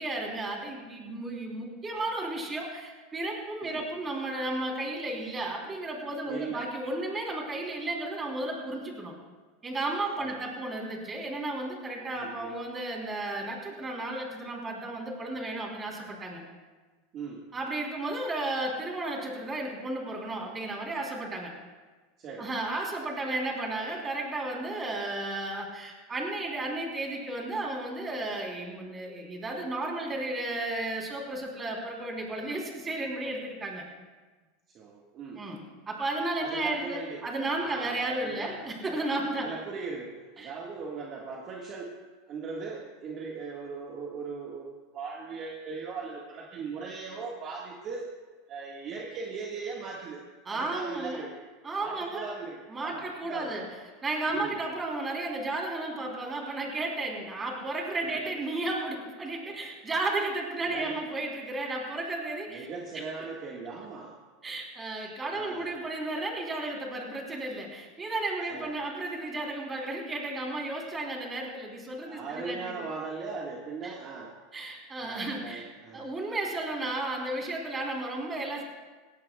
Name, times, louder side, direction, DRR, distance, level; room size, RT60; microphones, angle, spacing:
voice 1, 0.0-9.1 9.6-16.4 17.5-21.5 22.4-33.8 35.4-39.5 40.4-40.5 50.5-51.2 51.6-52.2 52.7-53.6 54.0-62.7 62.9-63.1 64.4-72.8 73.8-74.0 74.5-75.7 75.9-78.6, right 2 dB, 20° right, -1 dB, 3.5 m, -33 dB
voice 2, 6.2-6.7 10.2-10.4 12.1-12.5 17.1-17.4 22.2-22.5 34.7-35.4 36.4-38.6 39.2-42.0 42.3-48.1 48.5-50.2 50.5-51.4 51.8-53.7 54.3-54.6 58.0-58.2 60.6-61.0 62.5-64.2 65.3-65.7 68.5-68.8 72.1-74.3 75.0-76.0, right 5 dB, 40° right, -2 dB, 1.7 m, -39 dB
18.5 x 16.5 x 2.3 m, 1.3 s
supercardioid pair, 130°, 0 cm